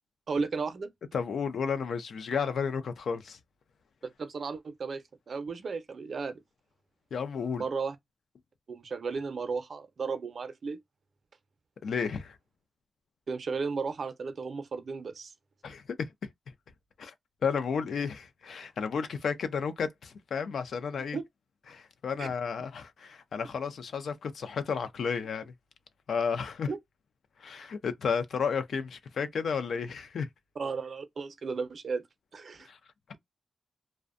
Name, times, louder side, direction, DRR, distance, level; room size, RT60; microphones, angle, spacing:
voice 1, 0.3-0.9 4.2-6.4 7.6-8.0 8.7-10.8 13.3-15.3 21.1-21.2 22.2-22.3 26.7-26.8 30.6-32.0 32.3-32.7, right 4 dB, 50° right, 0.5 m, -34 dB
voice 2, 1.1-3.4 7.1-7.6 11.8-12.4 15.6-15.8 17.0-17.1 17.4-21.2 21.7-25.5 26.1-26.7 27.4-30.3 32.7-32.8, left 6 dB, 65° left, 0.4 m, -32 dB
2.5 x 2.1 x 2.4 m
wide cardioid pair, 130°, 0 cm